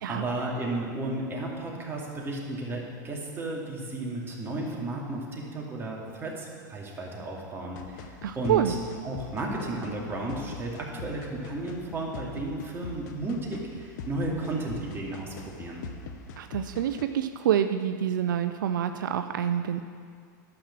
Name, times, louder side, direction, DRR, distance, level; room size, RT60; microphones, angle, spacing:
voice 1, 0.1-8.8 9.0-15.8, right 2 dB, 20° right, -3 dB, 2.5 m, -33 dB
sound 1, 7.8-17.0, left 5 dB, 65° left, 0.9 m, -43 dB
voice 2, 8.2-8.7 16.4-19.8, right 10 dB, 80° right, 8 dB, 0.5 m, -27 dB
11.5 x 6.0 x 7.3 m, 2.2 s
hypercardioid pair, 110°, 10 cm